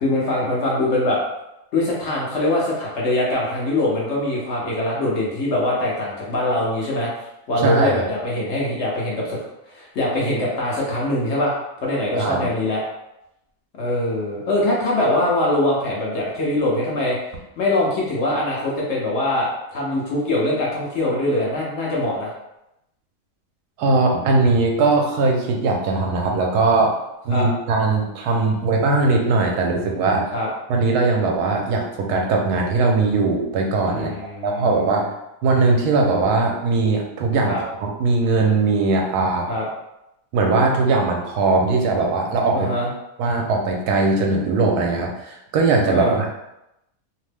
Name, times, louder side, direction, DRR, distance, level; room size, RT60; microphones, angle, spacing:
voice 1, 0.0-1.2 1.7-7.1 7.5-9.4 9.7-12.8 13.8-22.3 27.3-27.5 30.3-30.5 33.9-34.9 37.5-37.6 39.5-39.7 42.5-42.9 45.8-46.2, left 1 dB, 60° left, -4 dB, 0.8 m, -23 dB
voice 2, 7.6-8.0 12.2-12.5 23.8-26.9 27.2-30.3 30.7-34.1 34.4-35.1 35.4-39.5 40.3-42.7 43.2-46.3, right 3 dB, 80° right, 1 dB, 1.1 m, -20 dB
2.8 x 2.1 x 3.2 m, 0.87 s
omnidirectional pair, 1.7 m